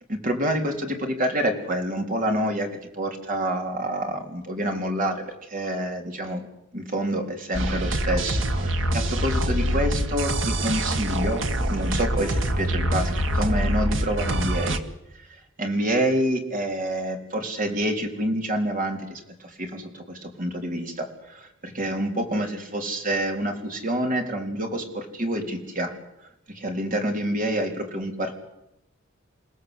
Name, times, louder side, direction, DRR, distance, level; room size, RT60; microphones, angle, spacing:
voice 1, 0.1-2.7 2.9-6.4 6.7-14.8 15.3-25.9 26.5-28.3, right 1 dB, 40° right, 3 dB, 4.0 m, -27 dB
sound 1, 7.5-14.8, right 1 dB, 65° right, 1.8 m, -25 dB
29.0 x 17.5 x 8.3 m, 0.87 s
head